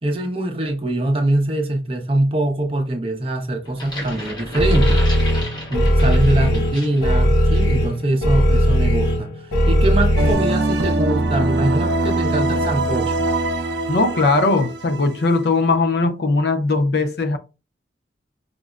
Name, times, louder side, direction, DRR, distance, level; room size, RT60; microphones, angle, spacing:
voice 1, 0.0-5.0 5.7-13.2, right 1 dB, 30° right, 0.6 m, -23 dB
sound 1, 3.7-7.1 7.5-7.7, left 1 dB, 25° left, 1.1 m, -33 dB
sound 2, 4.6-10.3, equal, 85° left, 1.2 m, -17 dB
sound 3, 10.2-15.6, right 2 dB, 80° right, 0.5 m, -22 dB
voice 2, 13.9-17.4, left 3 dB, 65° left, 0.5 m, -19 dB
5.1 x 2.0 x 2.3 m
head